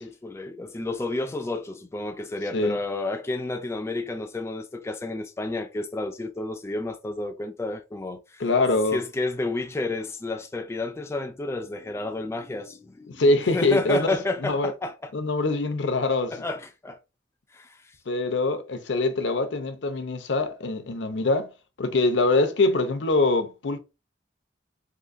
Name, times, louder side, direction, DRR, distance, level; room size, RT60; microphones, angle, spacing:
voice 1, 0.0-8.4 8.9-15.1 16.3-17.0 17.5-17.9, left 2 dB, 15° left, 0.3 m, -31 dB
voice 2, 8.4-9.0 13.1-14.1 14.4-14.7 15.1-16.3 18.1-21.5 21.8-23.8, left 2 dB, 75° left, 0.6 m, -23 dB
3.7 x 2.6 x 2.5 m
head